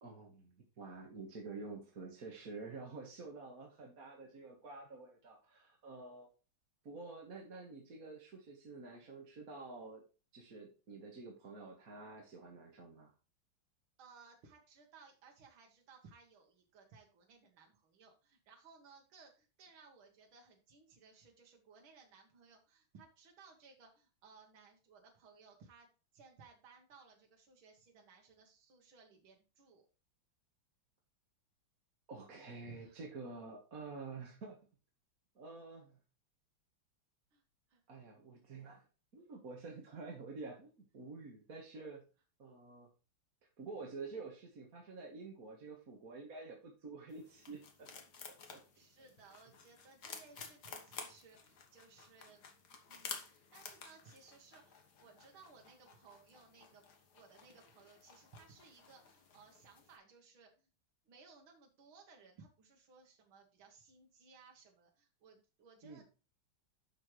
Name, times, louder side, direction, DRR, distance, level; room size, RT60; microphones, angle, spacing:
voice 1, 0.0-6.3 6.8-10.0 10.3-13.1 32.1-34.6 35.4-36.0 37.9-38.8 39.1-42.0 42.4-42.9 43.6-47.9 48.5-48.6 65.8-66.0, right 3 dB, 45° right, 0 dB, 2.0 m, -49 dB
voice 2, 14.0-29.9 32.6-33.0 37.3-37.4 37.7-37.8 48.7-52.5 52.9-56.8 57.1-60.7 61.1-66.0, right 5 dB, 85° right, 1 dB, 2.2 m, -61 dB
sound 1, 47.1-60.0, left 5 dB, 55° left, 1.8 m, -53 dB
10.5 x 6.3 x 3.2 m, 0.34 s
omnidirectional pair, 2.2 m